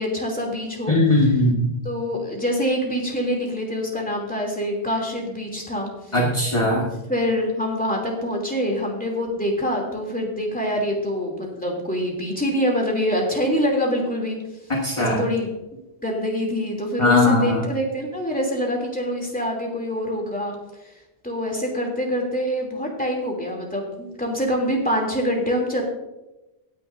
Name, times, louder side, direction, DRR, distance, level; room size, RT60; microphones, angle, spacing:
voice 1, 0.0-1.0 1.2-1.3 1.8-5.9 6.8-14.4 15.0-15.5 16.0-20.6 21.2-25.8, equal, 10° left, -1 dB, 2.9 m, -25 dB
voice 2, 0.9-1.6 6.1-6.9 14.8-15.2 17.0-17.6, left 2 dB, 30° left, -2 dB, 1.7 m, -19 dB
17.0 x 10.0 x 2.7 m, 0.97 s
omnidirectional pair, 1.1 m